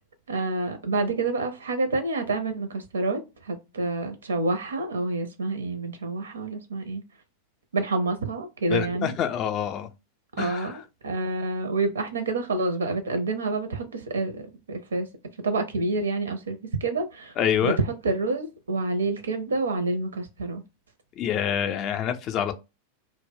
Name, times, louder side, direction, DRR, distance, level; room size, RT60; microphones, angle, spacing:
voice 1, 0.3-7.0 7.7-9.1 10.4-15.1 15.4-17.3 17.6-20.6, right 2 dB, 70° right, 0.5 m, -28 dB
voice 2, 8.7-9.9 10.4-10.8 17.4-17.8 21.2-22.5, left 9 dB, 35° left, 0.3 m, -26 dB
2.1 x 2.0 x 3.3 m
figure-of-eight pair, 90°, 0 cm